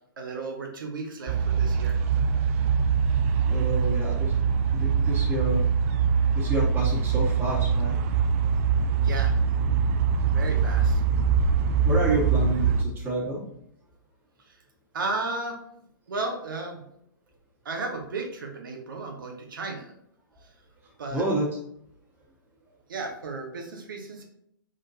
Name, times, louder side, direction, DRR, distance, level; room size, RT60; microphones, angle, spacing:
voice 1, 0.2-2.0 9.0-9.3 10.3-11.0 14.5-14.6 14.9-15.6 16.1-16.8 17.6-19.9 20.4-20.5 21.0-21.2 22.9-24.2, right 3 dB, 65° right, 2 dB, 0.9 m, -34 dB
sound 1, 1.3-12.8, right 6 dB, 35° right, 0.4 m, -23 dB
voice 2, 3.5-4.3 4.7-5.7 6.3-8.0 11.8-13.4 21.1-21.5, right 1 dB, 20° right, -6 dB, 1.8 m, -29 dB
5.0 x 3.7 x 2.7 m, 0.74 s
figure-of-eight pair, 115°, 12 cm